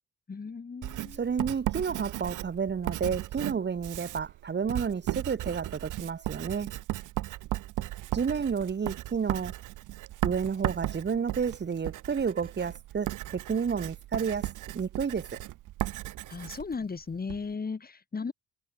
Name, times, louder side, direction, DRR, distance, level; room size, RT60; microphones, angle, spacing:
voice 1, 0.3-1.2 16.3-18.3, left 5 dB, 30° left, 3.1 m, -36 dB
Writing, 0.8-17.4, right 15 dB, 90° right, 2.8 m, -36 dB
voice 2, 1.2-6.7 8.1-9.5 10.2-15.4, right 6 dB, 35° right, 1.7 m, -31 dB
cardioid pair, 90°, 30 cm